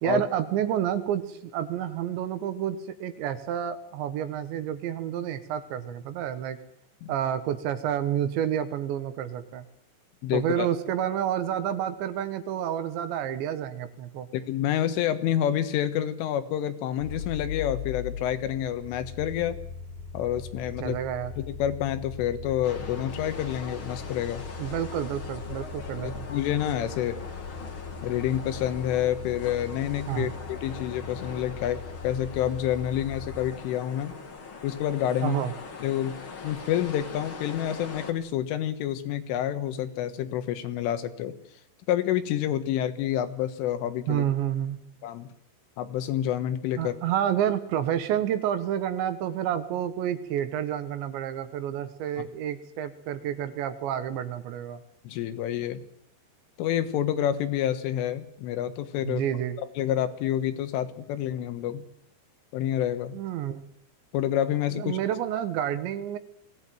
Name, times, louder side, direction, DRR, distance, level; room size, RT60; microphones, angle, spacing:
voice 1, 0.0-6.6 7.1-9.7 10.3-14.3 20.8-21.3 24.6-26.3 30.1-30.3 35.2-35.5 44.1-44.8 46.8-54.8 59.0-59.6 63.1-63.6 64.7-66.2, right 10 dB, 70° right, 10 dB, 3.5 m, -29 dB
voice 2, 10.2-10.7 14.3-19.6 20.1-21.0 21.4-24.4 26.0-27.2 28.0-34.2 34.6-35.4 35.8-41.4 41.9-44.3 45.0-45.3 45.8-47.0 52.2-52.3 55.1-55.9 56.6-59.2 59.8-61.9 62.5-63.2 64.1-65.0, left 11 dB, 85° left, 10 dB, 3.9 m, -28 dB
sound 1, 17.0-33.5, left 6 dB, 60° left, 3.4 m, -40 dB
sound 2, 22.6-38.1, left 4 dB, 40° left, 2.1 m, -42 dB
22.0 x 17.0 x 9.3 m, 0.67 s
omnidirectional pair, 5.6 m